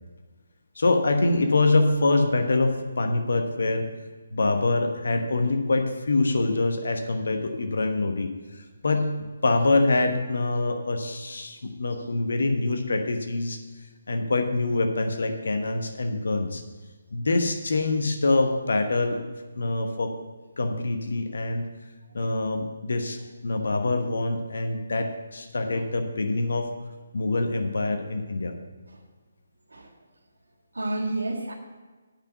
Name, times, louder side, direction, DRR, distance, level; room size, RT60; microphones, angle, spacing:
voice 1, 0.8-3.9 4.3-9.1 9.4-13.6 14.1-16.6 17.1-19.2 19.6-20.1 20.6-21.7 22.1-26.7 27.1-28.5, left 2 dB, 60° left, 5 dB, 1.1 m, -25 dB
voice 2, 29.7-30.0 30.7-31.5, right 2 dB, 70° right, 2 dB, 1.7 m, -32 dB
8.7 x 6.1 x 8.0 m, 1.3 s
figure-of-eight pair, 145°, 0 cm